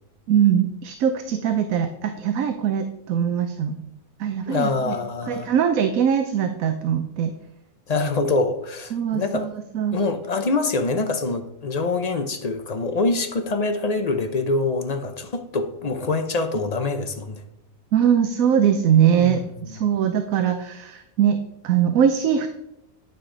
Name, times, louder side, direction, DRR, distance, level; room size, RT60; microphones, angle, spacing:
voice 1, 0.3-3.8 4.2-5.0 5.2-7.3 8.9-10.0 17.9-22.5, right 8 dB, 75° right, 8 dB, 1.1 m, -21 dB
voice 2, 4.5-5.5 7.9-9.5 9.9-17.4 19.2-19.8, left 3 dB, 35° left, 7 dB, 0.7 m, -25 dB
9.8 x 8.9 x 3.8 m, 0.84 s
omnidirectional pair, 1.5 m